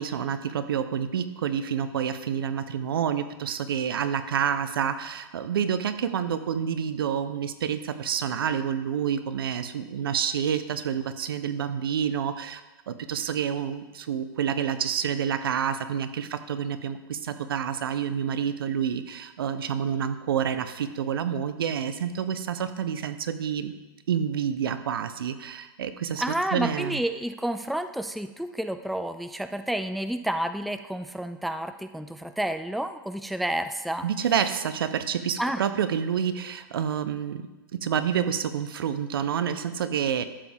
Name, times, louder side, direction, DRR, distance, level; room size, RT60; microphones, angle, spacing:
voice 1, 0.0-23.7 24.1-26.2 26.5-27.0 34.0-37.5 37.7-40.2, right 8 dB, 75° right, 11 dB, 0.8 m, -28 dB
voice 2, 26.2-34.1 35.4-35.6, right 1 dB, ahead, 9 dB, 0.4 m, -30 dB
12.5 x 7.1 x 3.5 m, 1.1 s
hypercardioid pair, 115°, 12 cm